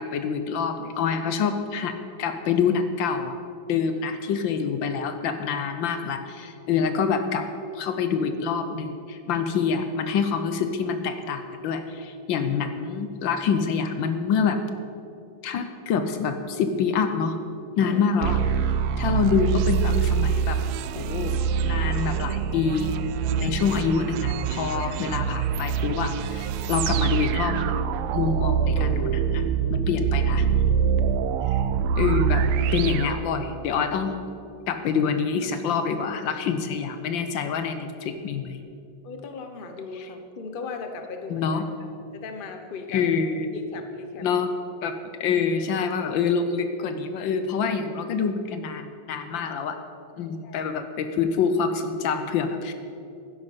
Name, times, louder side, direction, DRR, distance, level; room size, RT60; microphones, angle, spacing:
voice 1, 0.0-3.3 3.7-7.5 7.7-14.6 15.4-17.4 17.8-18.4 19.0-20.6 20.9-21.3 21.6-23.0 23.4-27.8 28.1-29.4 29.7-30.5 31.5-31.6 32.0-32.4 32.7-34.2 34.7-38.6 41.3-41.6 42.9-43.5 44.2-44.5 44.8-49.8 50.2-52.7, left 6 dB, 70° left, 8 dB, 1.4 m, -26 dB
sound 1, 18.2-33.8, right 7 dB, 90° right, 1.5 m, -25 dB
voice 2, 23.2-23.6 31.0-31.1 39.0-41.6 42.1-43.1 43.5-44.3 50.1-50.6, left 4 dB, 45° left, 6 dB, 0.7 m, -38 dB
12.0 x 10.0 x 5.5 m, 2.7 s
omnidirectional pair, 2.3 m